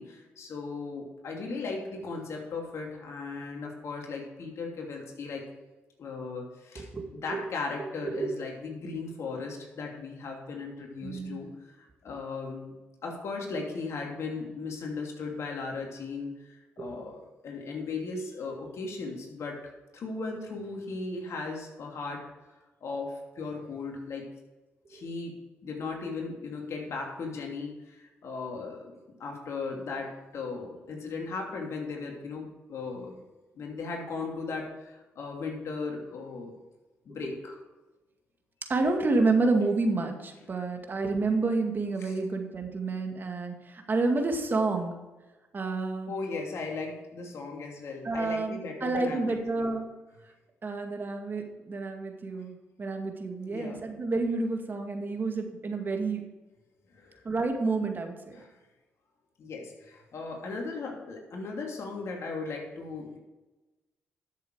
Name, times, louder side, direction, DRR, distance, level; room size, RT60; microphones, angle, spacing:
voice 1, 0.0-5.5 6.0-12.7 13.0-19.6 19.9-22.2 22.8-24.3 24.9-28.9 29.2-33.2 33.5-36.5 37.0-37.6 42.0-42.1 46.1-49.7 53.5-53.8 56.9-57.2 58.3-58.5 59.4-63.2, left 4 dB, 65° left, 0 dB, 2.8 m, -37 dB
voice 2, 6.8-7.4 8.0-8.3 11.0-11.4 24.9-25.0 38.7-45.0 45.5-46.1 48.0-49.9 50.6-56.2 57.2-58.4, right 3 dB, 40° right, 4 dB, 2.1 m, -29 dB
12.5 x 7.0 x 4.8 m, 1.1 s
supercardioid pair, 60°, 5 cm